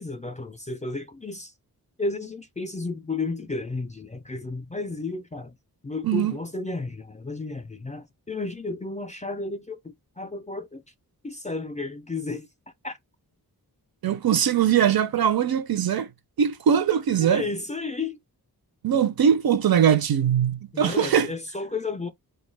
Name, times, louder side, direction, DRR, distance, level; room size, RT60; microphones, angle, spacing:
voice 1, 0.0-1.5 2.0-5.5 5.8-10.8 11.2-12.5 12.8-13.0 17.2-18.2 20.7-22.1, left 3 dB, 20° left, 0.3 m, -32 dB
voice 2, 14.0-16.1 16.4-17.5 18.8-21.3, right 8 dB, 65° right, 0.5 m, -21 dB
2.3 x 2.2 x 3.2 m
wide cardioid pair, 90°, 39 cm